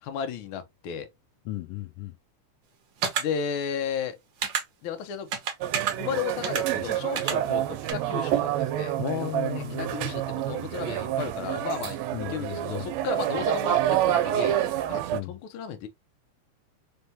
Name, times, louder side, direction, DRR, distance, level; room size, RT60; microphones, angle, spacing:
voice 1, 0.0-1.1 3.2-4.2 4.8-5.3 6.0-8.9 9.8-12.0 12.3-15.9, left 7 dB, 70° left, 1.3 m, -34 dB
voice 2, 1.4-2.1 9.0-10.2 12.1-12.9 15.1-15.3, left 14 dB, 85° left, 1.3 m, -35 dB
sound 1, 3.0-3.2 4.4-4.6 5.3-5.9 6.4-6.6 7.2-7.3 7.9-8.0, right 7 dB, 65° right, 1.2 m, -28 dB
sound 2, 5.6-15.2, right 12 dB, 80° right, 1.7 m, -28 dB
4.2 x 3.5 x 2.8 m
omnidirectional pair, 3.3 m